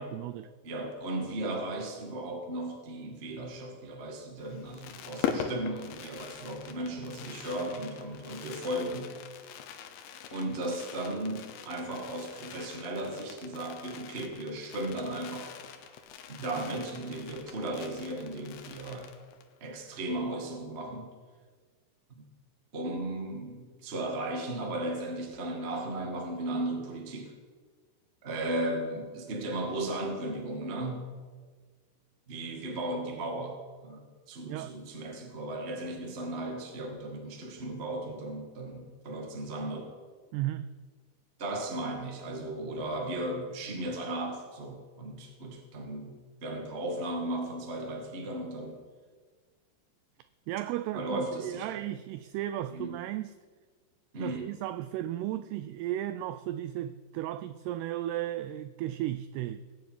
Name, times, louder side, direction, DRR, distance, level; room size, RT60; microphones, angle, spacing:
voice 1, 0.0-0.5 34.5-34.7 40.3-40.7 50.5-53.3 54.2-59.6, right 13 dB, 85° right, 2.3 m, -35 dB
voice 2, 0.6-9.1 10.3-15.5 16.3-19.1 19.6-21.1 22.1-22.2 22.7-27.3 28.2-31.1 32.3-39.9 41.4-48.8 50.9-51.7 52.7-53.0 54.1-54.5, right 1 dB, 40° right, 0.9 m, -36 dB
Fireworks, 4.4-19.6 19.9-20.0 20.2-20.4, left 8 dB, 90° left, 3.6 m, -42 dB
20.0 x 7.1 x 9.3 m
omnidirectional pair, 5.2 m